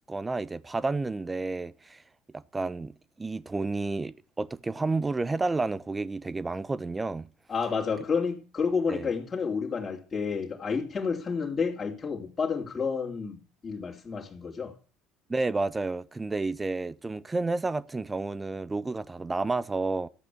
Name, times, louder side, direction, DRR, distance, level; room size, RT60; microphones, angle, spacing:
voice 1, 0.1-2.0 2.3-7.3 8.9-9.1 15.3-20.1, right 3 dB, 20° right, 0.9 m, -31 dB
voice 2, 7.5-14.7, left 5 dB, 30° left, 3.1 m, -30 dB
13.5 x 8.5 x 9.7 m
hypercardioid pair, 60°, 0 cm